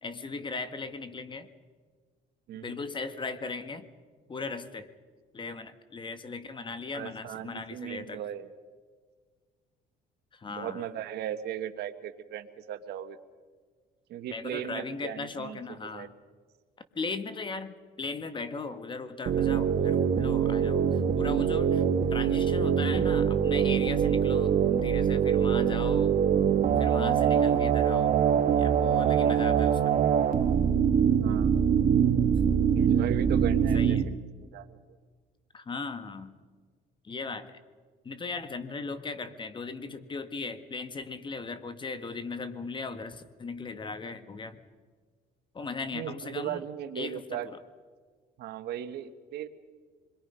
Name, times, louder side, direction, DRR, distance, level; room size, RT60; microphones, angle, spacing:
voice 1, 0.0-1.5 2.6-3.9 4.3-4.9 5.3-8.2 10.3-10.9 14.3-16.1 16.9-21.8 22.1-26.2 26.8-28.3 28.6-30.0 33.7-34.0 35.5-36.4 37.0-37.6 38.0-44.6 45.5-46.6 46.9-47.6, left 4 dB, 30° left, 11 dB, 1.4 m, -38 dB
voice 2, 2.5-2.8 6.9-8.5 10.5-13.2 14.1-16.1 24.1-24.4 31.2-31.7 32.7-34.1 34.4-34.8 45.9-47.5 48.4-49.5, right 10 dB, 75° right, 10 dB, 1.3 m, -37 dB
sound 1, 19.3-34.0, right 8 dB, 50° right, 1.2 m, -24 dB
26.5 x 22.0 x 5.5 m, 1.5 s
cardioid pair, 110°, 17 cm